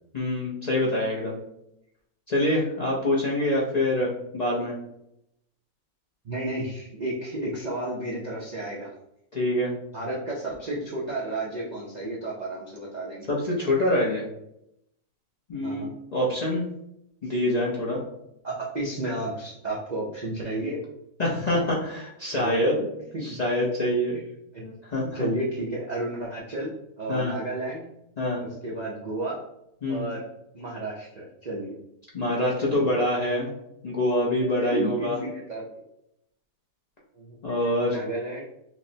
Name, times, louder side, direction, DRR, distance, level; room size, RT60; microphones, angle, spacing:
voice 1, 0.1-1.4 2.3-4.7 9.3-9.7 13.3-14.2 15.5-15.9 16.1-16.6 17.2-18.0 21.2-22.9 23.2-24.1 24.6-25.2 27.1-27.3 28.2-28.4 29.8-30.1 32.1-33.5 33.8-35.2 37.4-38.0, left 1 dB, 55° left, -5 dB, 0.4 m, -25 dB
voice 2, 6.2-8.9 9.9-13.3 15.5-15.9 18.4-20.8 22.3-22.6 23.1-23.4 24.1-24.2 24.5-24.6 25.1-27.8 28.4-29.4 29.9-30.2 30.5-31.8 32.8-32.9 34.6-35.6 37.1-37.4 37.8-38.4, right 1 dB, 70° right, -5 dB, 0.4 m, -32 dB
5.8 x 2.1 x 2.7 m, 0.81 s
omnidirectional pair, 1.7 m